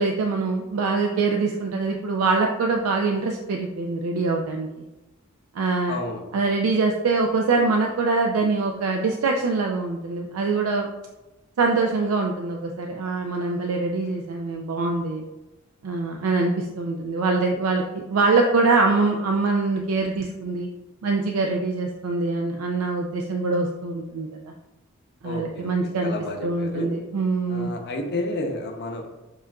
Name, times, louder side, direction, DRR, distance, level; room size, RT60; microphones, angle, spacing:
voice 1, 0.0-4.8 5.5-6.0 6.3-10.9 11.6-15.2 15.8-20.7 21.0-24.4 25.2-26.1 26.4-27.7, right 3 dB, 85° right, 2 dB, 0.4 m, -24 dB
voice 2, 5.9-6.2 25.2-25.7 26.0-26.9 27.5-29.1, left 1 dB, 50° left, 3 dB, 0.6 m, -31 dB
7.2 x 2.5 x 2.2 m, 1.0 s
head